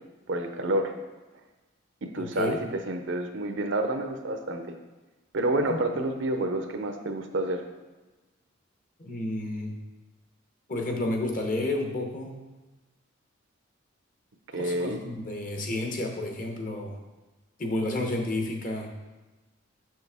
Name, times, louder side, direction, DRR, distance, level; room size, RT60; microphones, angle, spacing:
voice 1, 0.3-0.9 2.0-4.7 5.3-7.6 14.5-15.0, right 1 dB, 65° right, 6 dB, 0.6 m, -29 dB
voice 2, 2.2-2.6 5.7-5.8 9.0-9.7 10.7-12.3 14.6-17.0 17.6-18.9, left 2 dB, 40° left, 2 dB, 0.9 m, -31 dB
6.3 x 6.3 x 3.5 m, 1.2 s
head